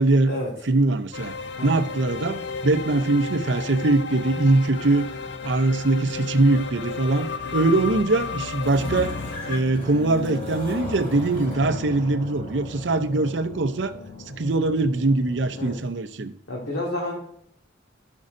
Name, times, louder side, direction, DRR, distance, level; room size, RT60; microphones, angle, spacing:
voice 1, 0.0-0.3 0.7-1.3 1.6-5.1 5.4-9.1 9.5-13.9 14.3-16.3, right 2 dB, 65° right, 9 dB, 0.6 m, -22 dB
sound 1, 1.1-9.6, left 5 dB, 60° left, 0.5 m, -33 dB
sound 2, 7.3-15.8, left 2 dB, 40° left, 2.9 m, -37 dB
voice 2, 16.5-17.2, left 1 dB, 85° left, -3 dB, 1.8 m, -29 dB
13.0 x 5.3 x 2.5 m, 0.70 s
head